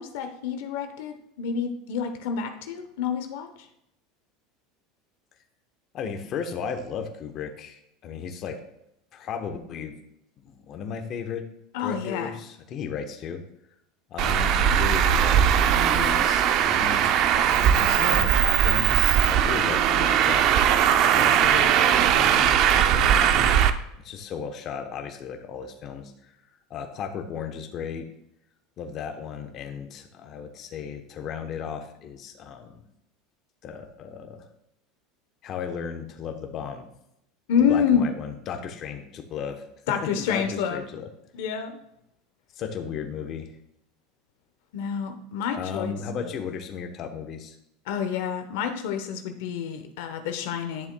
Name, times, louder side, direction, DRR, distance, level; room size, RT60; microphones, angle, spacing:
voice 1, 0.0-3.7 11.7-12.3 37.5-38.0 39.9-40.8 41.3-41.8 44.7-45.9 46.2-46.3 47.9-50.9, left 7 dB, 75° left, 6 dB, 0.9 m, -28 dB
voice 2, 5.9-8.6 9.1-9.9 10.4-11.4 11.8-13.4 14.1-23.6 24.0-26.1 26.7-28.1 28.8-32.8 33.6-34.4 35.4-36.9 37.7-39.6 40.2-41.1 42.5-43.5 45.6-47.6, left 6 dB, 40° left, 5 dB, 0.9 m, -35 dB
Traffic noise roadway noise, 14.2-23.7, right 9 dB, 50° right, 0.5 m, -20 dB
11.0 x 7.0 x 2.2 m, 0.80 s
supercardioid pair, 135°, 0 cm